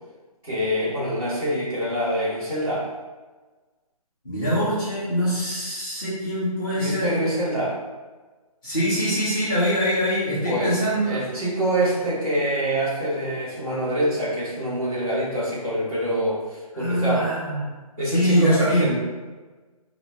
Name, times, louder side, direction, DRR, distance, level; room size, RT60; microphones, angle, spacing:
voice 1, 0.4-2.9 6.7-7.8 10.4-10.8 11.0-17.3 18.0-19.0, equal, 5° left, -14 dB, 0.4 m, -25 dB
voice 2, 4.2-7.1 8.6-11.2 16.7-17.6 18.0-18.9, equal, 30° left, -12 dB, 1.2 m, -23 dB
3.9 x 2.0 x 3.2 m, 1.3 s
hypercardioid pair, 165°, 19 cm